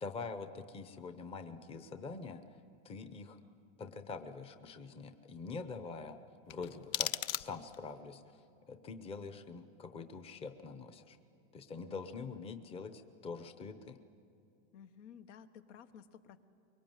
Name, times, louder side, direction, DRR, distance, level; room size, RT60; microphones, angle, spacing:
voice 1, 0.0-2.4 2.8-3.4 3.8-6.2 6.5-8.4 8.7-11.2 11.5-14.0, left 4 dB, 15° left, 9 dB, 0.8 m, -45 dB
sound 1, 6.5-7.9, left 13 dB, 55° left, 0.7 m, -38 dB
voice 2, 11.9-12.3 14.7-16.4, left 8 dB, 80° left, 9 dB, 1.4 m, -55 dB
24.5 x 23.0 x 9.2 m, 2.5 s
supercardioid pair, 170°, 35 cm